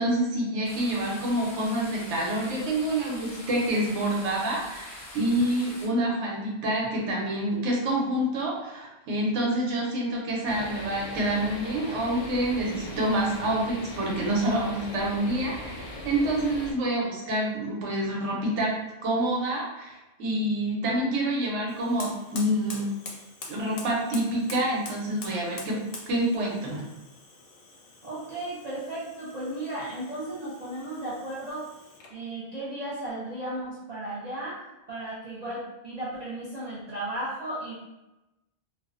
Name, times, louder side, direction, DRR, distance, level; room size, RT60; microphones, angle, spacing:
voice 1, 0.0-18.7 19.0-22.9 23.5-25.8 26.1-26.8, right 1 dB, 90° right, -2 dB, 1.0 m, -27 dB
sound 1, 0.6-5.9, left 1 dB, 35° left, 0.3 m, -44 dB
sound 2, 10.4-16.7, left 1 dB, 85° left, 0.9 m, -39 dB
Fire, 21.7-32.2, left 3 dB, 65° left, 0.7 m, -45 dB
voice 2, 28.0-31.7 32.1-34.6 34.9-37.7, right 1 dB, 55° right, -8 dB, 0.5 m, -35 dB
2.5 x 2.1 x 2.4 m, 1.0 s
omnidirectional pair, 1.2 m